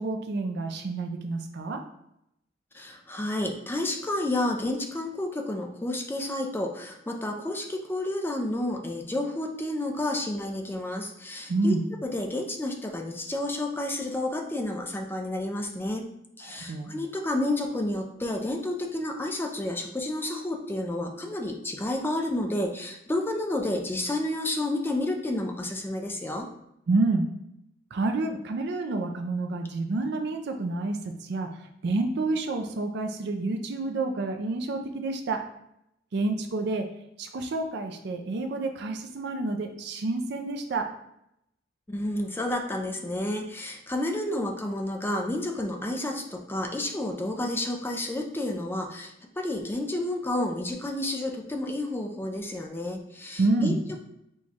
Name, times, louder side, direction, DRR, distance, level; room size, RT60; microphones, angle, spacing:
voice 1, 0.0-1.8 11.5-11.9 16.4-16.9 26.9-27.3 27.9-31.5 31.8-35.4 36.1-36.9 37.2-40.9 53.4-53.8, right 2 dB, 65° right, 5 dB, 0.4 m, -28 dB
voice 2, 2.7-11.7 12.0-16.1 16.4-26.5 41.9-54.0, left 1 dB, 10° left, 2 dB, 0.4 m, -30 dB
4.6 x 2.2 x 4.1 m, 0.80 s
head